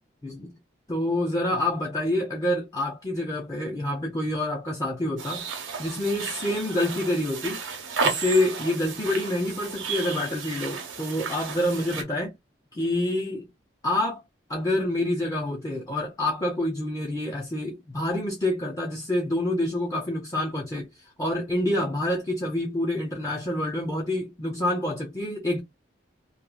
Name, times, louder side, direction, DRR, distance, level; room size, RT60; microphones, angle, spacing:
voice 1, 0.9-5.5 5.8-7.6 8.0-12.3 12.7-13.5 13.8-14.2 14.5-20.9 21.2-25.6, left 1 dB, 20° left, 0.5 m, -27 dB
sound 1, 5.2-12.0, right 5 dB, 90° right, 0.8 m, -33 dB
2.9 x 2.3 x 2.2 m
head